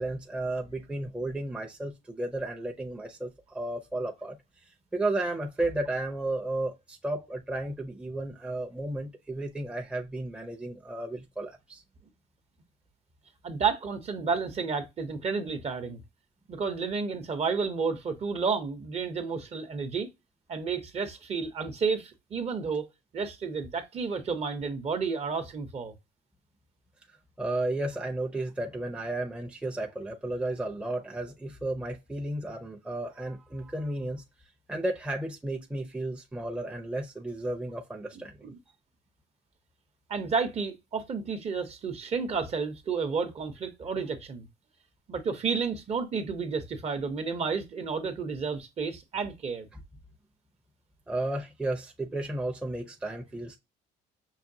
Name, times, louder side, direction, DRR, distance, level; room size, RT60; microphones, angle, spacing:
voice 1, 0.0-4.4 4.9-11.8 27.4-34.2 34.7-38.3 51.1-53.6, right 2 dB, 5° right, 0.6 m, -33 dB
voice 2, 13.4-16.0 16.5-20.1 20.5-22.8 23.1-25.9 38.4-38.6 40.1-44.5 45.1-49.7, right 5 dB, 40° right, 0.8 m, -31 dB
5.6 x 2.2 x 2.7 m
cardioid pair, 110°, 17 cm